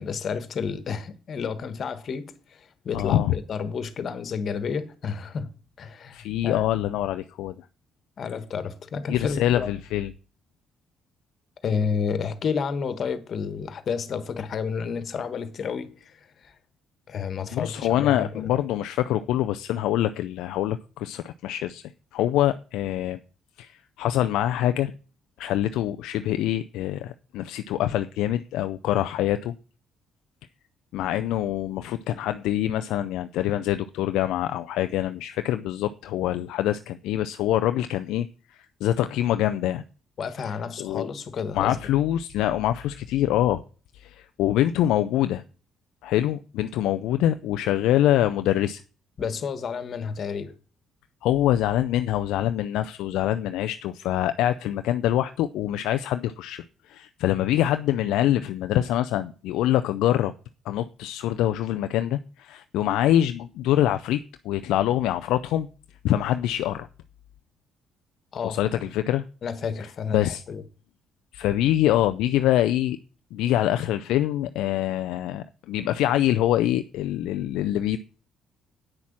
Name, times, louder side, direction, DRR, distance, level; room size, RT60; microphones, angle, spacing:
voice 1, 0.0-5.5 5.8-6.7 8.2-9.7 11.6-16.1 16.4-16.5 17.1-18.5 40.2-41.8 49.2-50.5 68.3-68.6 69.4-70.6, left 6 dB, 55° left, 1.4 m, -30 dB
voice 2, 2.9-3.3 6.1-7.5 9.1-10.1 17.5-21.8 22.1-23.2 23.6-24.9 25.4-29.5 30.9-39.8 40.5-41.1 41.5-43.6 43.9-45.4 46.0-48.8 51.2-60.3 60.7-65.7 66.0-66.9 68.4-69.3 70.1-70.4 71.3-73.0 73.3-78.0, left 12 dB, 80° left, 0.4 m, -25 dB
8.8 x 6.1 x 7.2 m
supercardioid pair, 60°, 0 cm